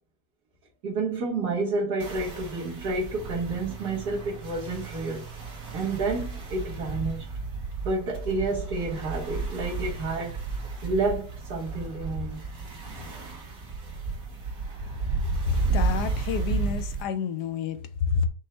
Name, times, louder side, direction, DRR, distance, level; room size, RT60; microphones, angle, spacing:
voice 1, 0.8-5.2 5.7-7.3 7.8-10.4 10.8-12.4, right 3 dB, 80° right, 1.8 m, -30 dB
sound 1, 2.0-17.0, right 4 dB, 60° right, 1.8 m, -33 dB
voice 2, 15.4-18.3, left 6 dB, 80° left, 1.2 m, -29 dB
5.4 x 2.1 x 4.3 m
omnidirectional pair, 1.7 m